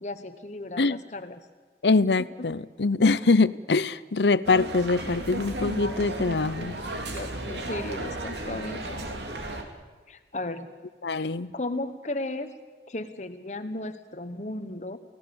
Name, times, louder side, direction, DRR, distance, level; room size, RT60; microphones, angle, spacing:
voice 1, 0.0-1.4 7.1-9.0 10.1-10.7 11.2-11.3 11.5-12.5 12.9-15.0, left 2 dB, 40° left, 9 dB, 1.2 m, -35 dB
voice 2, 1.8-6.8 11.0-11.5, left 3 dB, 75° left, 17 dB, 0.8 m, -23 dB
sound 1, 4.4-9.6, right 1 dB, 75° right, 3.1 m, -34 dB
29.5 x 18.0 x 7.0 m, 1.4 s
head